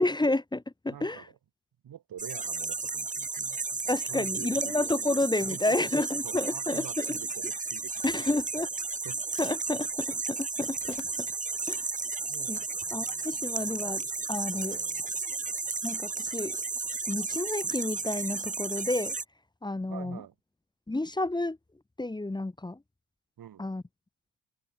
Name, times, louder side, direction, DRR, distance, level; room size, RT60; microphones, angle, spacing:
voice 1, 0.0-1.3 3.9-7.1 8.0-8.7 9.4-11.3 11.7-11.8 12.5-12.6 12.9-14.8 15.8-16.6 17.1-19.1 19.6-20.2 20.9-21.6 22.0-22.8 23.6-23.8, left 2 dB, 10° left, 1.2 m, -30 dB
voice 2, 0.9-1.4 1.8-4.8 5.5-8.2 9.0-9.2 12.3-13.4 14.5-15.0 19.9-20.3 23.4-23.7, right 10 dB, 50° right, 2.3 m, -46 dB
sound 1, 2.2-19.2, right 4 dB, 15° right, 1.3 m, -33 dB
sound 2, 7.7-14.2, left 13 dB, 70° left, 4.0 m, -57 dB
open air
cardioid pair, 130°, 45 cm